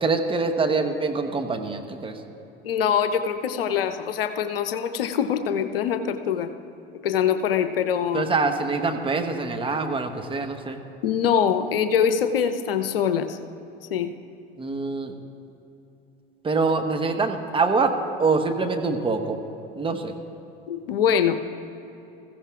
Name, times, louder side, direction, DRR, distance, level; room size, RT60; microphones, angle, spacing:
voice 1, 0.0-2.2 8.1-10.8 14.6-15.2 16.4-19.4 19.8-20.1, right 4 dB, 20° right, 5 dB, 1.0 m, -25 dB
voice 2, 2.6-6.5 7.0-8.3 11.0-13.4 13.9-14.1 20.7-21.4, left 8 dB, 75° left, 9 dB, 0.7 m, -23 dB
21.0 x 15.0 x 2.4 m, 3.0 s
figure-of-eight pair, 80°, 29 cm